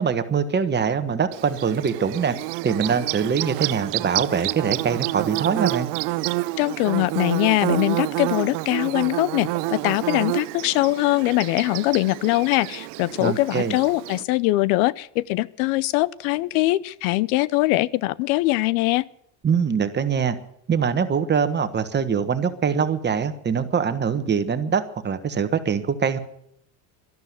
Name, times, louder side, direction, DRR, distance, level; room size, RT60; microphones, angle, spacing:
voice 1, 0.0-2.4 2.6-5.9 13.2-13.8 19.4-20.4 20.7-26.2, right 6 dB, 25° right, 10 dB, 1.4 m, -23 dB
Bird / Buzz, 1.3-14.2, right 20 dB, 75° right, 0.6 m, -29 dB
voice 2, 6.6-19.0, left 19 dB, 85° left, 22 dB, 0.7 m, -22 dB
12.5 x 11.5 x 9.6 m, 0.73 s
cardioid pair, 125°, 42 cm